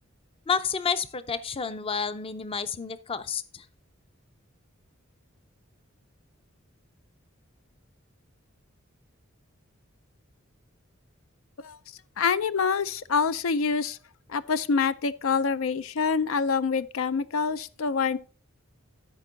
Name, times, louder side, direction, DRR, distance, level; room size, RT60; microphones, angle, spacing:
voice 1, 0.5-3.7, left 6 dB, 25° left, 0.5 m, -30 dB
voice 2, 12.2-14.0 14.3-18.2, left 5 dB, 80° left, 0.5 m, -26 dB
13.0 x 5.2 x 3.9 m
head